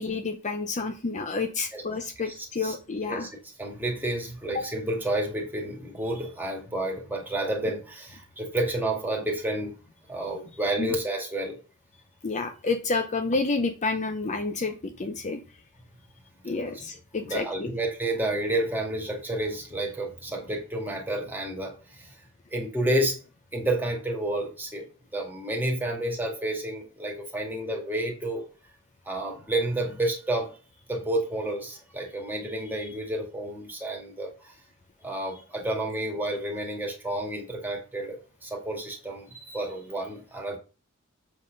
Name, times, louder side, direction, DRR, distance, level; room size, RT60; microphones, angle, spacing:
voice 1, 0.0-3.3 4.5-4.6 10.8-10.9 12.2-15.4 16.4-17.7, left 3 dB, 35° left, 6 dB, 0.7 m, -29 dB
voice 2, 2.2-2.8 3.1-3.3 3.6-11.6 16.6-16.7 17.2-22.2 22.5-23.2 23.5-28.4 29.1-30.6 30.9-34.5 35.0-40.6, right 1 dB, 10° right, 0 dB, 2.0 m, -30 dB
7.4 x 4.1 x 5.2 m, 0.34 s
head